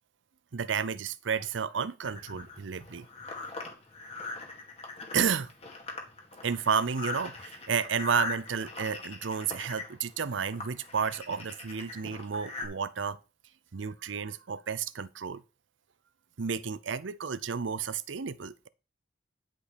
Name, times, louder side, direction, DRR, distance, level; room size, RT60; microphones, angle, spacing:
voice 1, 0.5-3.1 5.1-5.5 6.4-13.2 13.7-15.4 16.4-18.7, right 6 dB, 90° right, 0.6 m, -31 dB
sound 1, 2.0-12.7, left 3 dB, 35° left, 2.2 m, -41 dB
10.0 x 5.4 x 5.1 m
head